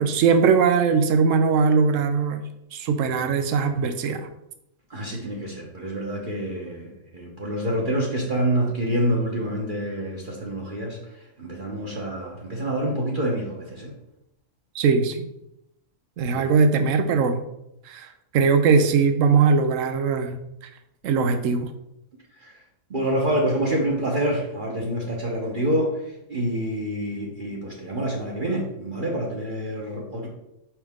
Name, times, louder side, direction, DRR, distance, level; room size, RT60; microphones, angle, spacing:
voice 1, 0.0-2.4 2.7-4.2 14.7-15.3 16.2-17.4 17.9-18.1 18.3-20.4 21.0-21.7, right 5 dB, 75° right, 8 dB, 1.0 m, -20 dB
voice 2, 4.9-13.9 16.3-16.5 22.4-22.6 22.9-30.3, right 1 dB, 40° right, -3 dB, 1.1 m, -27 dB
5.7 x 5.2 x 3.6 m, 0.83 s
omnidirectional pair, 1.4 m